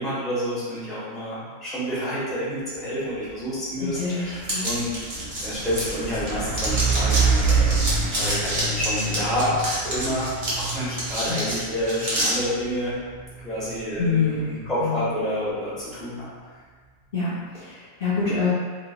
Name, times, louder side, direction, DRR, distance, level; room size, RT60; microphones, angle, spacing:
voice 1, 0.0-9.6 9.8-13.0 13.4-16.3, equal, ahead, -10 dB, 0.6 m, -29 dB
Truck, 3.3-3.4 3.7-16.3, right 4 dB, 85° right, 1.1 m, -28 dB
voice 2, 3.8-4.6 11.3-11.4 14.0-15.0 17.1-18.5, left 4 dB, 55° left, -11 dB, 0.7 m, -26 dB
sound 1, 4.4-6.3 6.5-12.3, right 1 dB, 40° right, 0.9 m, -28 dB
3.1 x 2.3 x 2.4 m, 1.5 s
omnidirectional pair, 1.3 m